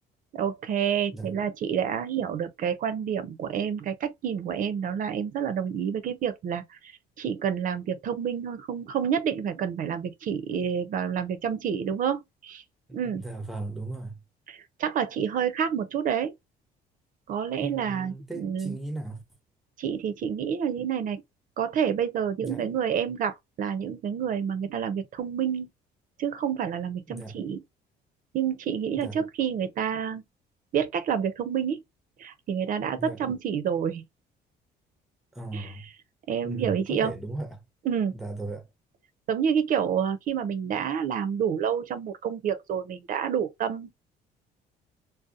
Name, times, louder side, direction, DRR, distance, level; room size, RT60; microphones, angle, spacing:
voice 1, 0.3-6.9 7.2-12.6 12.9-13.2 14.5-16.3 17.3-18.8 19.8-21.2 21.6-25.7 26.2-27.6 28.3-30.2 30.7-31.8 32.2-34.0 35.5-35.7 36.3-37.1 37.9-38.2 39.3-43.9, right 8 dB, 55° right, 0.5 m, -28 dB
voice 2, 12.9-14.2 17.6-19.2 22.4-22.7 27.1-27.4 29.0-29.2 33.0-33.2 35.3-35.9 36.4-37.6 38.1-38.7, right 2 dB, ahead, 0.6 m, -37 dB
2.7 x 2.0 x 2.3 m
cardioid pair, 110°, 17 cm